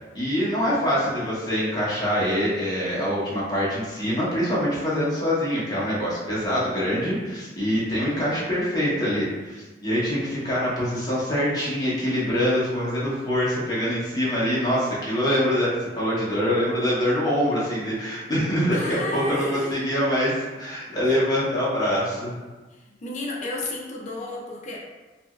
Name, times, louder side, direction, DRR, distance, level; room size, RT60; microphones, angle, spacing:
voice 1, 0.1-22.3, equal, 20° left, -8 dB, 0.9 m, -24 dB
voice 2, 18.7-19.8 22.7-24.8, left 2 dB, 40° left, -2 dB, 0.4 m, -32 dB
2.8 x 2.5 x 2.4 m, 1.2 s
head